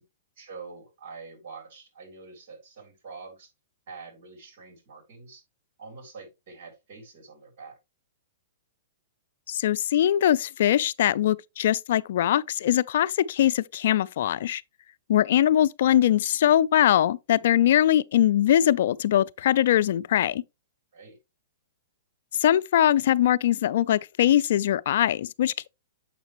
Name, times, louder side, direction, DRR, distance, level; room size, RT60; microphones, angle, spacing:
voice 1, 0.4-3.5 3.9-5.4 5.8-7.8 20.9-21.2, right 4 dB, 50° right, 3.6 m, -45 dB
voice 2, 9.5-14.6 15.1-20.4 22.4-25.7, left 11 dB, 65° left, 0.3 m, -22 dB
7.2 x 5.9 x 3.0 m
hypercardioid pair, 140°, 0 cm